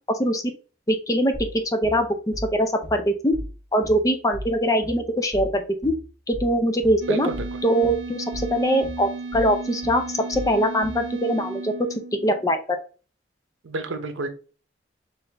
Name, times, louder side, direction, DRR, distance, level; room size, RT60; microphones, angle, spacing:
voice 1, 0.1-0.4 0.9-1.3 1.7-3.4 3.7-6.0 6.3-7.3 7.6-11.9 12.2-12.6, equal, 15° left, 6 dB, 0.5 m, -22 dB
sound 1, 1.3-11.1, equal, 25° right, 0.9 m, -37 dB
sound 2, 7.0-12.6, right 3 dB, 60° right, 0.4 m, -35 dB
voice 2, 7.1-7.5 13.6-14.3, right 2 dB, 85° right, 7 dB, 0.8 m, -29 dB
5.8 x 2.7 x 3.3 m, 0.37 s
head